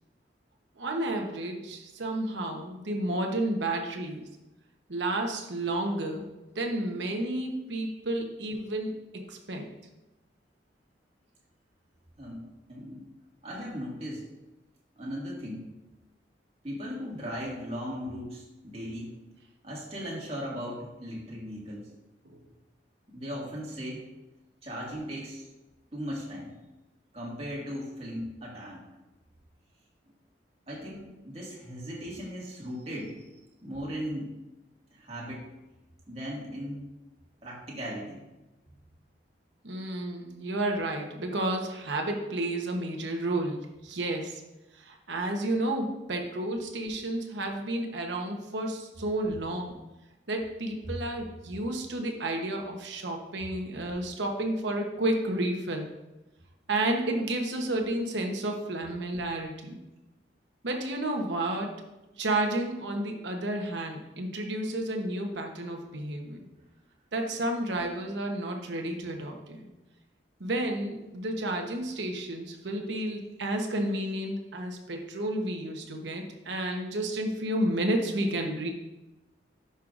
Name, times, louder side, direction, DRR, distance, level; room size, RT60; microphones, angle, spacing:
voice 1, 0.8-4.3 4.9-6.3 6.5-9.7 22.2-22.4 39.6-44.4 44.7-49.8 50.3-55.9 56.7-59.8 60.6-61.7 62.2-66.4 67.1-69.7 70.4-78.7, right 1 dB, 75° right, 2 dB, 1.0 m, -31 dB
voice 2, 12.7-13.1 13.4-14.3 15.0-15.6 16.6-19.2 19.6-21.9 23.1-24.1 24.6-25.5 25.9-26.5 27.1-28.8 30.7-33.3 33.6-34.3 34.9-35.5 36.1-36.9 37.4-38.2 50.8-50.9, equal, 35° right, -4 dB, 2.0 m, -37 dB
10.5 x 5.6 x 2.5 m, 1.0 s
head